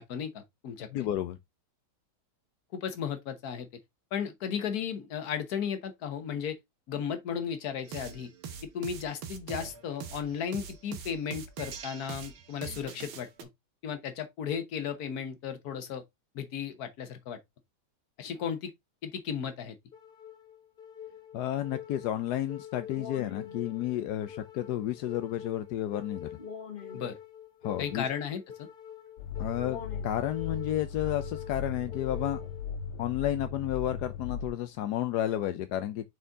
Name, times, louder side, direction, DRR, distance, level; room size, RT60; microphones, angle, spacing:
voice 1, 0.0-1.1 2.7-3.7 4.1-6.6 6.9-8.3 8.7-13.5 13.8-16.0 16.3-17.4 18.2-18.7 19.0-19.8 26.9-27.2 27.8-28.7, left 7 dB, 55° left, 1.4 m, -35 dB
voice 2, 0.9-1.4 21.3-26.3 27.6-28.1 29.4-32.4 33.0-36.1, left 12 dB, 70° left, 1.0 m, -31 dB
sound 1, 7.9-13.4, right 7 dB, 85° right, 1.9 m, -42 dB
sound 2, 19.9-32.9, left 8 dB, 35° left, 0.9 m, -45 dB
sound 3, 29.2-34.5, left 6 dB, 90° left, 1.9 m, -37 dB
6.5 x 4.3 x 3.5 m
omnidirectional pair, 2.2 m